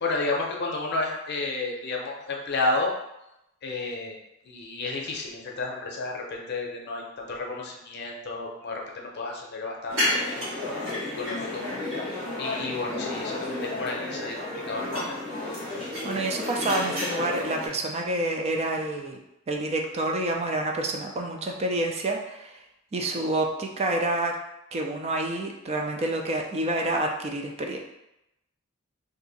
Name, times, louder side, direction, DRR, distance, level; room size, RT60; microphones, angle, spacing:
voice 1, 0.0-2.9 3.6-4.2 4.4-11.6 11.9-12.0 12.4-14.4 14.7-15.0, left 3 dB, 55° left, 0 dB, 0.6 m, -31 dB
sound 1, 9.9-17.7, left 1 dB, 80° right, 1.5 m, -31 dB
voice 2, 16.0-19.2 19.5-22.6 22.9-24.3 24.7-27.8, right 2 dB, 30° right, 2 dB, 0.4 m, -28 dB
2.7 x 2.5 x 3.9 m, 0.87 s
head